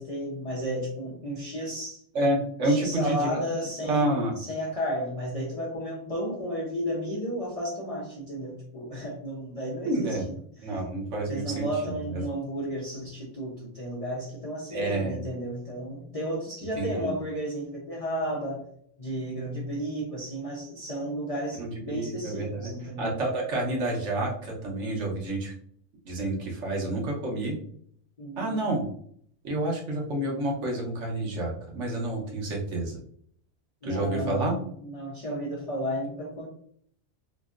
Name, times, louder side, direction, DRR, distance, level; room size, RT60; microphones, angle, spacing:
voice 1, 0.0-2.0 2.6-10.4 10.7-10.8 11.3-18.6 19.0-23.2 28.2-28.6 33.8-36.5, equal, 45° left, -6 dB, 0.4 m, -33 dB
voice 2, 2.1-3.4 3.8-4.4 9.8-10.2 10.6-12.2 14.7-15.2 16.8-17.1 21.6-22.7 23.0-25.5 26.1-27.5 28.4-28.8 29.4-33.0 33.8-34.6, right 1 dB, 65° right, -2 dB, 1.1 m, -29 dB
2.9 x 2.6 x 2.4 m, 0.64 s
omnidirectional pair, 1.5 m